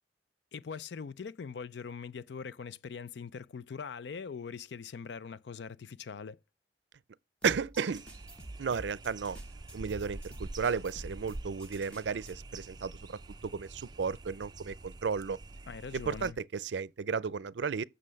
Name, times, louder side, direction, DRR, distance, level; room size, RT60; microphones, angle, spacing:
voice 1, 0.5-6.4 15.7-16.4, left 6 dB, 70° left, 0.4 m, -42 dB
sound 1, 7.4-12.3, right 1 dB, 5° left, 1.2 m, -49 dB
voice 2, 7.4-8.1 8.6-9.4 9.7-15.4 15.9-17.8, right 5 dB, 80° right, 0.5 m, -34 dB
sound 2, 7.9-16.3, right 2 dB, 25° right, 0.5 m, -47 dB
7.6 x 6.5 x 6.3 m
head